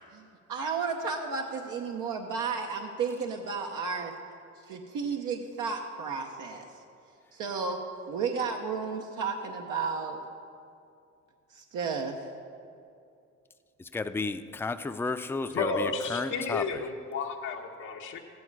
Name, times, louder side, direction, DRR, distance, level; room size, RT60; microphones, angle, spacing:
voice 1, 0.1-4.1 4.7-6.7 7.3-7.8 8.1-10.2 11.5-12.2, right 5 dB, 90° right, 2 dB, 0.9 m, -33 dB
voice 2, 13.8-16.8, left 3 dB, 10° left, 9 dB, 0.4 m, -33 dB
voice 3, 15.5-18.2, left 4 dB, 85° left, 0 dB, 1.1 m, -32 dB
14.0 x 9.7 x 4.7 m, 2.5 s
cardioid pair, 90°, 30 cm